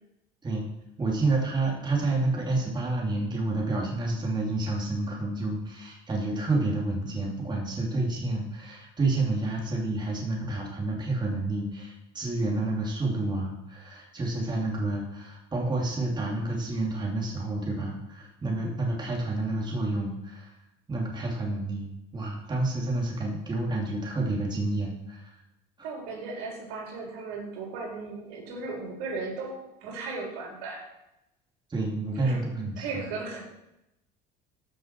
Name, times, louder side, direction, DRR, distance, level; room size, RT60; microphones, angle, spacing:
voice 1, 1.0-20.5 20.9-25.4 25.8-25.9 31.7-33.1, right 2 dB, 20° right, -2 dB, 2.7 m, -29 dB
voice 2, 25.8-30.9 32.1-32.4 32.8-33.4, right 3 dB, 85° right, -2 dB, 3.9 m, -36 dB
14.5 x 6.4 x 4.5 m, 0.88 s
cardioid pair, 120°, 20 cm